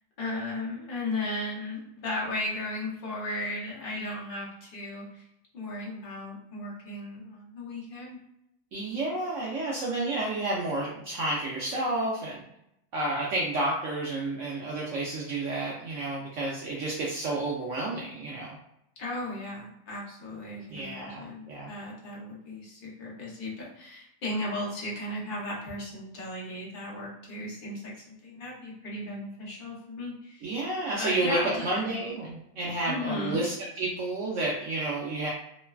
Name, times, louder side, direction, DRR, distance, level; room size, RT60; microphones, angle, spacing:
voice 1, 0.2-5.2 5.5-8.2 19.0-30.5 31.0-32.0 32.8-33.5, left 1 dB, 45° left, -5 dB, 0.6 m, -36 dB
voice 2, 8.7-12.4 12.9-18.5 20.7-21.7 30.4-35.3, right 2 dB, 70° right, -4 dB, 0.7 m, -30 dB
3.0 x 2.2 x 2.3 m, 0.81 s
omnidirectional pair, 1.7 m